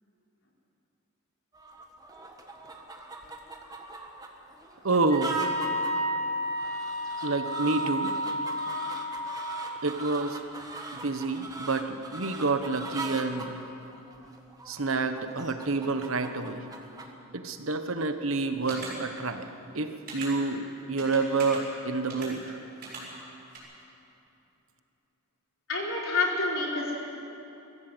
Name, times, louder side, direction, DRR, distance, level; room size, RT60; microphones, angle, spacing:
sound 1, 1.5-17.1, right 2 dB, 15° right, 1.5 m, -41 dB
voice 1, 4.8-5.5 7.2-8.1 9.8-10.4 10.9-13.6 14.7-16.7 17.3-19.5 19.7-22.6, right 3 dB, 70° right, 8 dB, 1.2 m, -28 dB
Wind instrument woodwind instrument, 5.1-9.5, equal, 20° left, 4.6 m, -31 dB
sound 2, 18.7-18.9 20.1-20.3 21.0-21.6 22.1-22.3 22.8-23.0 23.5-23.6, right 3 dB, 45° right, 6.7 m, -39 dB
voice 2, 25.7-27.0, left 3 dB, 65° left, -2 dB, 4.2 m, -28 dB
23.5 x 15.0 x 8.0 m, 2.9 s
head